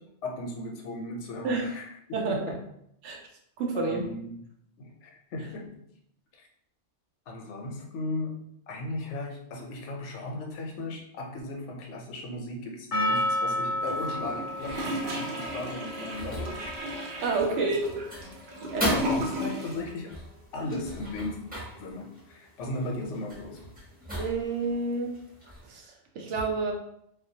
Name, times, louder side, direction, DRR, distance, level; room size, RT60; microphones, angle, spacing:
voice 1, 0.2-1.9 2.3-2.6 3.7-4.3 4.8-5.8 6.3-6.5 7.3-16.6 17.4-17.7 18.9-20.1 20.5-21.4 21.8-23.6, left 2 dB, 90° left, 1 dB, 0.9 m, -36 dB
voice 2, 2.1-2.5 3.0-3.2 3.6-4.1 17.2-18.1 18.7-19.0 24.2-25.2 25.6-26.7, right 3 dB, 85° right, 1 dB, 0.9 m, -29 dB
Percussion, 12.9-17.9, left 1 dB, 65° left, 0.3 m, -32 dB
Gurgling / Toilet flush, 13.8-19.9 20.1-20.2, equal, 60° right, 0.6 m, -35 dB
sound 1, 14.6-25.8, equal, 10° right, 0.6 m, -38 dB
2.2 x 2.1 x 2.6 m, 0.73 s
omnidirectional pair, 1.2 m